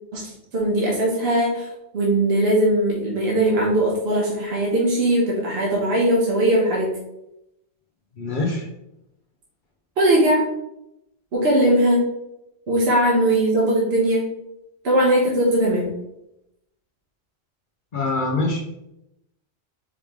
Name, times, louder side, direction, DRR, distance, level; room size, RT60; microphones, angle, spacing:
voice 1, 0.1-1.7 1.9-6.9 10.0-10.4 11.3-12.0 12.7-14.2 14.8-15.9, right 1 dB, 70° right, -4 dB, 1.2 m, -19 dB
voice 2, 8.1-8.7 17.9-18.6, left 2 dB, 55° left, 0 dB, 0.8 m, -24 dB
4.8 x 3.1 x 3.5 m, 0.87 s
omnidirectional pair, 1.1 m